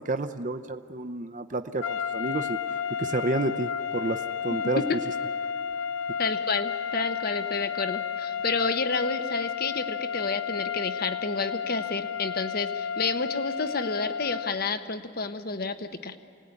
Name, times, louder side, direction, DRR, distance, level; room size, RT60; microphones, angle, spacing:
voice 1, 0.0-2.6 2.9-4.8, right 2 dB, 40° right, 7 dB, 0.7 m, -30 dB
sound 1, 1.8-14.7, left 7 dB, 85° left, 0.6 m, -32 dB
voice 2, 6.2-16.2, left 4 dB, 45° left, 9 dB, 1.1 m, -30 dB
27.0 x 18.5 x 9.8 m, 2.4 s
head